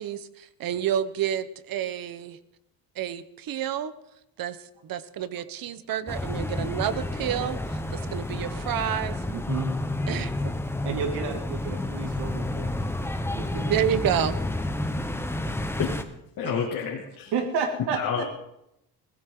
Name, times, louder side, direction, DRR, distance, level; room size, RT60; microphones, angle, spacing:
voice 1, 0.0-2.4 2.9-3.9 4.4-9.2 10.1-10.3 13.5-14.4, right 10 dB, 60° right, 13 dB, 1.2 m, -29 dB
sound 1, 6.1-16.0, left 2 dB, 5° left, 1.2 m, -30 dB
voice 2, 9.3-9.7 10.8-12.7 13.3-13.7 16.4-16.9 17.3-18.2, right 5 dB, 80° right, 3 dB, 2.6 m, -31 dB
voice 3, 16.4-17.3 18.0-18.2, left 7 dB, 55° left, 0 dB, 2.6 m, -29 dB
21.0 x 15.5 x 3.9 m, 0.83 s
cardioid pair, 105°, 39 cm